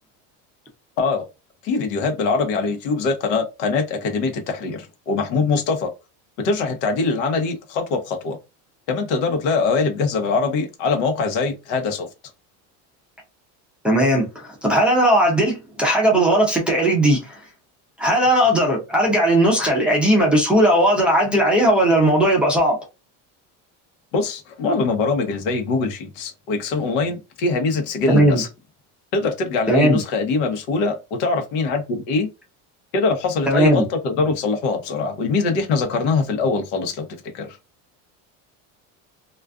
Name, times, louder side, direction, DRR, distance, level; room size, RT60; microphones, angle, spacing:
voice 1, 1.6-5.9 6.4-8.4 8.9-12.1 24.1-28.5 29.1-32.3 32.9-37.1 37.3-37.6, left 4 dB, 90° left, 0.9 m, -23 dB
voice 2, 13.8-17.4 18.0-22.8 28.1-28.4 29.7-30.0 33.5-33.8, right 1 dB, 5° right, 0.4 m, -17 dB
2.4 x 2.3 x 2.3 m
cardioid pair, 170°, 37 cm